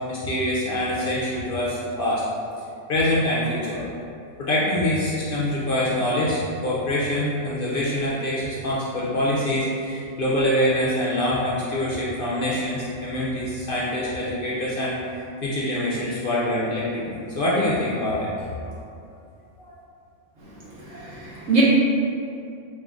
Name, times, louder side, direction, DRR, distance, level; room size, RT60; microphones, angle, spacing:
voice 1, 0.1-2.2 2.9-3.9 4.4-18.5 19.6-19.7, left 1 dB, 60° left, -6 dB, 0.6 m, -25 dB
voice 2, 20.4-21.6, right 2 dB, 75° right, -7 dB, 1.3 m, -25 dB
5.3 x 2.4 x 2.4 m, 2.5 s
omnidirectional pair, 1.3 m